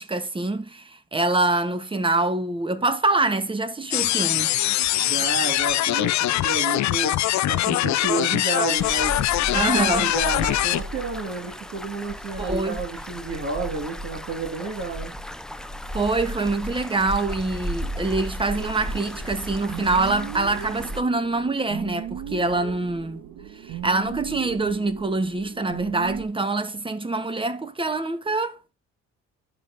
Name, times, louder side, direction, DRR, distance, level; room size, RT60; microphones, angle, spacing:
voice 1, 0.0-4.5 9.5-10.1 12.4-12.8 15.9-23.2 23.5-28.6, right 2 dB, 15° right, 1.0 m, -25 dB
sound 1, 3.9-10.8, left 15 dB, 70° left, 0.5 m, -22 dB
voice 2, 5.0-9.2 9.5-15.1, right 3 dB, 55° right, 1.9 m, -31 dB
sound 2, 8.8-21.0, equal, ahead, 0.5 m, -34 dB
sound 3, 18.5-26.3, right 10 dB, 75° right, 1.0 m, -37 dB
11.5 x 5.2 x 2.6 m
cardioid pair, 90°, 30 cm